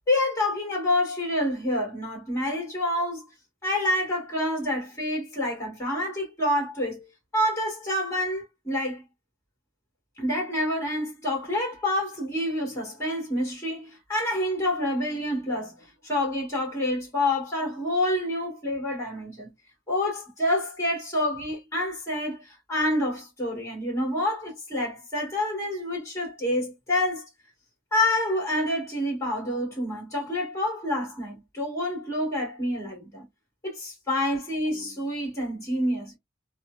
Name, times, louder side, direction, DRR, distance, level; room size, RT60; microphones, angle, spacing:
voice 1, 0.1-3.2 3.6-7.0 7.3-9.0 10.2-19.5 19.9-27.3 27.9-33.3 33.6-36.2, left 1 dB, 15° left, 1.4 m, -28 dB
3.0 x 2.1 x 2.3 m
head